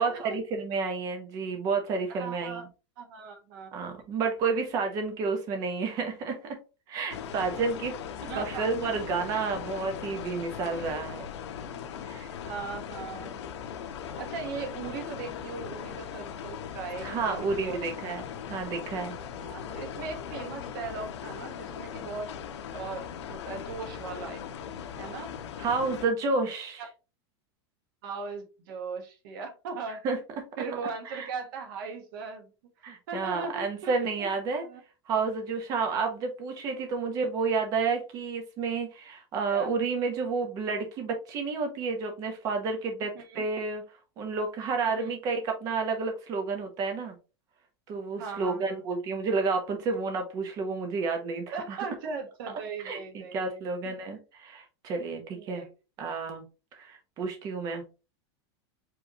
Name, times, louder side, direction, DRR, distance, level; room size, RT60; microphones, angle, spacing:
voice 1, 0.0-2.6 3.7-6.6 6.9-8.0 8.3-11.3 12.0-12.3 17.0-18.2 18.5-19.2 25.6-26.8 30.0-30.2 31.1-31.2 32.8-34.7 35.1-43.8 44.2-47.1 47.9-51.8 52.8-55.7 56.0-56.4 56.7-57.8, right 4 dB, 25° right, 4 dB, 1.1 m, -30 dB
voice 2, 2.1-2.6 3.0-3.9 8.2-8.7 12.5-13.3 14.2-17.8 19.4-22.3 22.7-24.4 25.0-25.3 28.0-30.0 30.6-32.5 33.1-34.3 34.6-34.8 39.5-39.7 43.1-43.4 44.9-45.1 48.2-48.8 51.5-53.6 55.3-55.7, right 4 dB, 50° right, 5 dB, 1.4 m, -38 dB
sound 1, 7.1-26.1, left 8 dB, 75° left, 1.0 m, -39 dB
5.1 x 3.4 x 3.0 m, 0.30 s
supercardioid pair, 175°, 14 cm